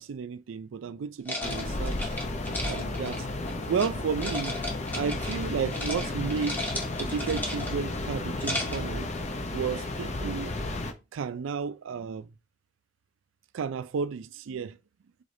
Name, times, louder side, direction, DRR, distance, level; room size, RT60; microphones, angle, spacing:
voice 1, 0.0-2.1 2.6-3.3 3.7-4.6 5.0-6.7 7.0-9.1 9.5-10.5 11.1-12.3 13.5-14.8, right 6 dB, 80° right, 0.4 m, -32 dB
sound 1, 1.2-3.9 4.2-5.4 5.7-6.0 6.3-7.9 8.2-8.9, left 1 dB, 10° left, 1.0 m, -35 dB
sound 2, 1.4-10.9, left 2 dB, 35° left, 0.6 m, -33 dB
4.9 x 4.0 x 2.6 m
head